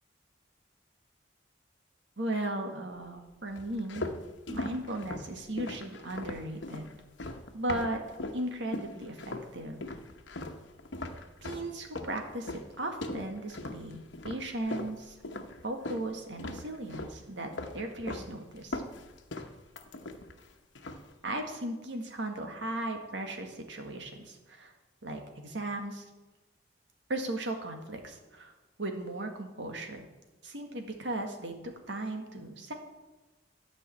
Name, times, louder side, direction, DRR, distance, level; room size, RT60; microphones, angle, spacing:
voice 1, 2.2-4.0 4.5-6.9 7.5-8.0 8.3-9.9 11.4-15.2 15.6-17.5 17.7-18.8 21.2-24.7 25.0-26.1 27.1-28.5 28.8-30.1 30.4-31.5 31.9-32.7, right 1 dB, 75° right, 4 dB, 1.8 m, -36 dB
sound 1, 3.5-8.4 8.7-9.5 9.8-16.1 16.4-17.2 17.5-18.3 18.6-20.4 20.7-21.1, left 2 dB, 80° left, 1.0 m, -39 dB
12.5 x 5.4 x 8.7 m, 1.1 s
head